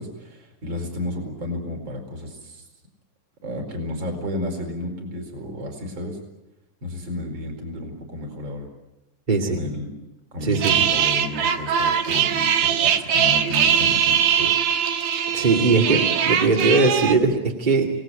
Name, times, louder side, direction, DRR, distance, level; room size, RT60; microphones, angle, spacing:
voice 1, 0.0-2.6 3.4-6.2 6.8-8.7 9.5-9.9 10.3-14.5, left 1 dB, 35° right, 4 dB, 5.2 m, -32 dB
voice 2, 9.3-9.7 10.4-10.8 15.3-17.9, right 3 dB, 15° right, 0 dB, 2.0 m, -20 dB
sound 1, 10.5-17.1, right 8 dB, 85° right, 3.0 m, -21 dB
28.5 x 19.0 x 9.0 m, 0.96 s
omnidirectional pair, 3.7 m